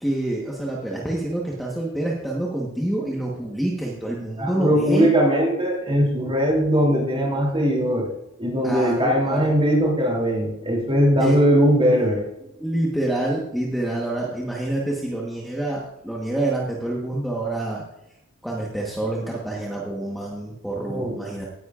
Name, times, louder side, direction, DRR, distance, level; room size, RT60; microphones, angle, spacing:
voice 1, 0.0-5.1 8.6-9.5 11.2-11.4 12.6-17.8 18.4-21.4, right 1 dB, ahead, -3 dB, 1.2 m, -27 dB
voice 2, 4.4-8.1 8.4-12.2 20.9-21.2, equal, 25° right, -1 dB, 2.9 m, -20 dB
17.0 x 10.5 x 2.5 m, 0.87 s
head